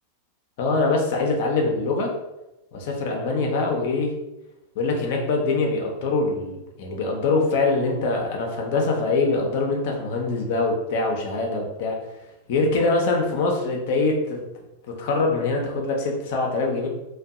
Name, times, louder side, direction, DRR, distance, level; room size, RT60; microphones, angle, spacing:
voice 1, 0.6-2.1 2.7-4.1 4.8-12.0 12.5-14.4 14.9-16.9, left 3 dB, 50° left, 1 dB, 0.5 m, -23 dB
2.5 x 2.2 x 2.4 m, 0.94 s
figure-of-eight pair, 90°, 0 cm